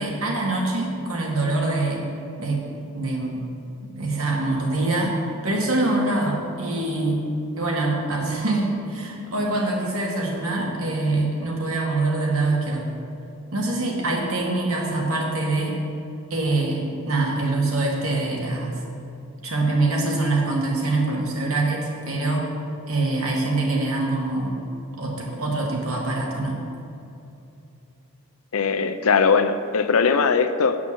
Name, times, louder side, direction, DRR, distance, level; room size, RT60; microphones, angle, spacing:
voice 1, 0.0-2.1 2.4-2.6 2.9-3.4 3.9-5.1 5.4-7.2 7.6-12.9 13.5-15.8 16.3-18.8 19.4-22.5 22.9-24.6 24.9-26.6, right 2 dB, 75° right, -1 dB, 2.0 m, -24 dB
voice 2, 28.5-30.8, left 5 dB, 75° left, 10 dB, 0.6 m, -20 dB
8.5 x 6.0 x 7.4 m, 2.7 s
head